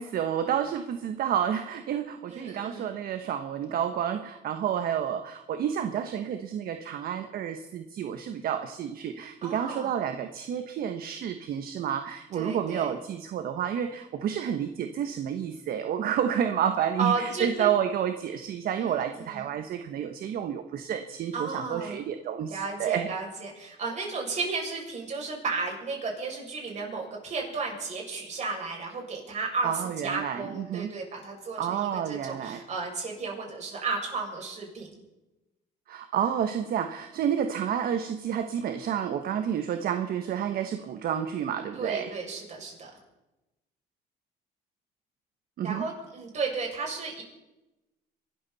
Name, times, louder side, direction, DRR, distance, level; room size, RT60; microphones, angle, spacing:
voice 1, 0.0-23.1 29.6-30.9 31.6-32.6 35.9-42.1 45.6-45.8, right 9 dB, 60° right, 8 dB, 1.3 m, -30 dB
voice 2, 2.3-3.0 9.4-9.9 12.3-13.0 17.0-17.7 18.8-19.4 21.3-22.0 22.5-29.7 30.0-35.0 41.7-42.9 45.6-47.2, right 4 dB, 45° right, 0 dB, 6.9 m, -33 dB
23.5 x 13.5 x 4.2 m, 0.97 s
cardioid pair, 110°, 17 cm